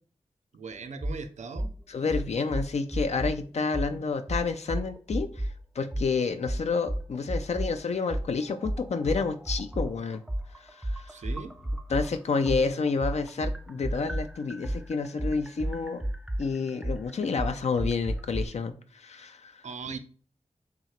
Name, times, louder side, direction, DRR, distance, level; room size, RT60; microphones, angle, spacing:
voice 1, 0.5-1.7 11.1-11.5 19.6-20.0, right 5 dB, 90° right, 9 dB, 0.4 m, -39 dB
sound 1, 1.0-1.2 1.6-1.7 2.1-3.4 3.7-3.9 4.3-5.6 5.9-6.1 6.5-7.7 8.1-12.1 12.5-18.5, right 1 dB, 5° right, 0.3 m, -31 dB
voice 2, 1.9-5.5 5.8-10.2 10.6-11.1 11.9-16.0 16.4-19.6, left 4 dB, 70° left, 8 dB, 0.4 m, -29 dB
3.0 x 2.7 x 4.4 m, 0.42 s
wide cardioid pair, 60°, 12 cm